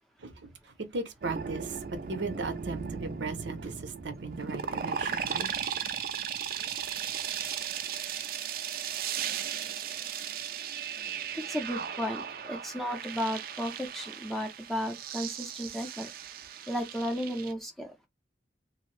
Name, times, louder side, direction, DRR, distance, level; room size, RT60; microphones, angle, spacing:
voice 1, 0.2-5.5, right 3 dB, 85° right, 0.7 m, -37 dB
sound 1, 1.2-17.5, right 8 dB, 55° right, 0.4 m, -36 dB
voice 2, 11.5-16.1 16.7-17.9, equal, ahead, 0.5 m, -34 dB
2.6 x 2.0 x 3.0 m
head